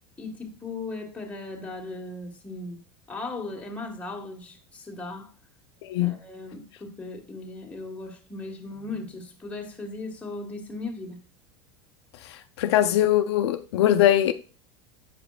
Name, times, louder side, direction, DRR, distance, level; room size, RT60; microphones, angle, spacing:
voice 1, 0.2-2.8 3.1-5.3 6.0-11.2, left 3 dB, 10° left, 1.6 m, -37 dB
voice 2, 12.6-14.3, left 12 dB, 80° left, 0.5 m, -21 dB
8.5 x 4.9 x 2.4 m
supercardioid pair, 110°, 14 cm